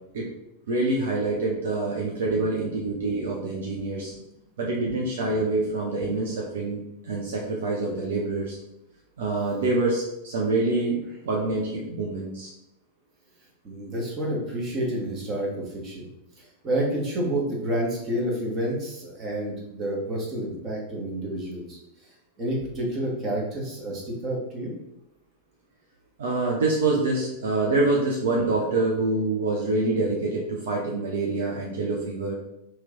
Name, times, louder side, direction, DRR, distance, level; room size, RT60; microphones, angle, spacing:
voice 1, 0.7-4.1 4.6-8.6 9.2-12.5 26.2-32.3, right 2 dB, 60° right, -2 dB, 0.7 m, -26 dB
voice 2, 13.6-16.0 16.4-21.8 22.4-24.7, right 1 dB, 30° right, -3 dB, 1.3 m, -29 dB
3.1 x 3.0 x 3.6 m, 0.85 s
figure-of-eight pair, 90°, 0 cm